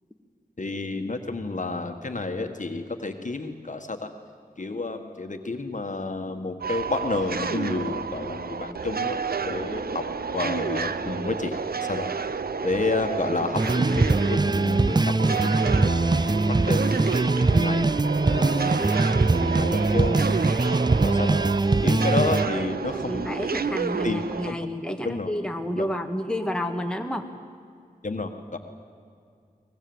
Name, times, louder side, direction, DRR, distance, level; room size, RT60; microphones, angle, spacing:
voice 1, 0.6-4.1 4.6-9.2 9.4-10.0 10.3-11.6 11.9-12.1 12.6-16.4 16.7-16.8 17.5-17.9 18.3-20.4 21.0-23.3 24.0-24.6 25.0-25.3 25.7-25.9 28.0-28.6, left 3 dB, 55° left, 5 dB, 1.6 m, -30 dB
sound 1, 6.6-24.5, right 5 dB, 75° right, 0.8 m, -30 dB
sound 2, 13.5-22.5, right 3 dB, 25° right, 0.5 m, -22 dB
voice 2, 22.9-27.3, left 1 dB, 5° left, 4 dB, 1.8 m, -30 dB
23.0 x 20.5 x 7.9 m, 2.3 s
wide cardioid pair, 50°, 16 cm